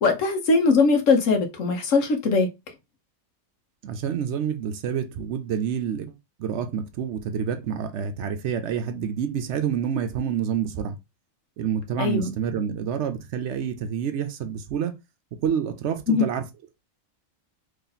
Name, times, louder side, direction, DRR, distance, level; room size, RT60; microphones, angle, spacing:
voice 1, 0.0-2.5 12.0-12.3 16.1-16.2, left 4 dB, 75° left, 1.3 m, -20 dB
voice 2, 3.8-11.0 11.6-14.9 15.4-16.4, right 8 dB, 70° right, 0.8 m, -28 dB
3.1 x 2.8 x 3.9 m
omnidirectional pair, 1.3 m